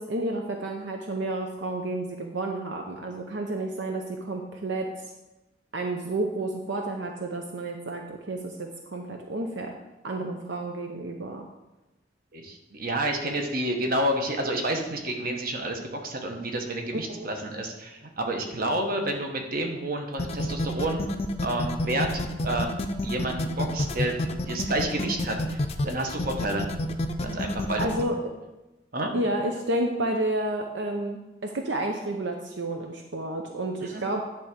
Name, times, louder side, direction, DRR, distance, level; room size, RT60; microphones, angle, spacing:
voice 1, 0.0-4.9 5.7-9.7 10.0-11.5 16.9-17.3 27.8-28.2 29.1-34.2, right 1 dB, 75° right, 2 dB, 0.7 m, -30 dB
voice 2, 12.3-21.1 21.4-22.7 23.0-24.1 24.4-26.7 27.2-28.0 28.9-29.1 33.8-34.0, right 1 dB, 50° right, 2 dB, 1.2 m, -30 dB
sound 1, 20.2-28.0, left 1 dB, 35° left, 0.6 m, -28 dB
10.5 x 3.5 x 6.6 m, 1.0 s
head